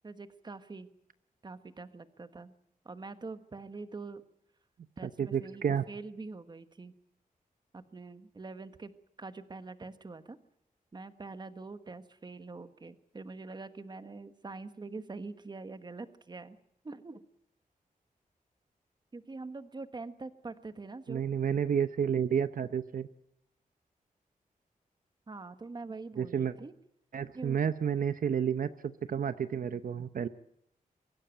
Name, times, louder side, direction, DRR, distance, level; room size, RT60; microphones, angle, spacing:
voice 1, 0.0-0.9 1.4-2.5 2.8-4.2 5.0-6.9 7.7-8.9 9.2-10.4 10.9-16.6 16.8-17.2 19.1-21.2 25.3-26.7 27.3-27.6, right 3 dB, 30° right, 11 dB, 1.3 m, -44 dB
voice 2, 5.0-5.8 21.1-23.1 26.2-26.5 27.1-30.3, right 8 dB, 70° right, 12 dB, 0.8 m, -30 dB
23.5 x 16.0 x 9.1 m, 0.77 s
wide cardioid pair, 160°, 15 cm